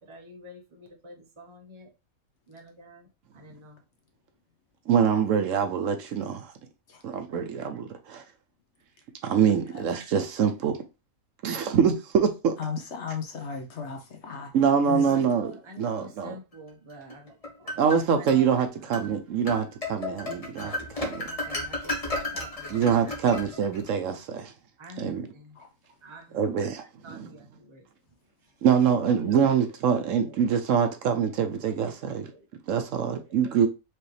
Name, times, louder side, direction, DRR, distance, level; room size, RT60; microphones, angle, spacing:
voice 1, 0.0-1.9 2.5-3.1 3.3-3.8 7.3-7.8 14.9-19.3 21.2-23.2 24.8-25.6 26.0-26.4 27.0-27.9 29.2-29.6 30.1-30.4 31.6-32.5 33.3-33.4, right 1 dB, 25° right, 0.9 m, -48 dB
voice 2, 4.9-6.5 7.0-8.2 9.2-10.8 11.4-12.5 14.5-15.5 15.8-16.3 17.8-21.3 22.7-24.5 25.0-25.3 26.3-27.3 28.6-32.3 32.7-33.7, right 7 dB, 70° right, 1.0 m, -25 dB
voice 3, 12.6-14.5 14.9-15.1 25.5-25.7, left 6 dB, 55° left, 1.1 m, -35 dB
sound 1, 17.1-18.4 18.9-19.1 19.5-23.9, left 2 dB, 30° left, 0.8 m, -34 dB
4.7 x 3.0 x 3.2 m
omnidirectional pair, 1.5 m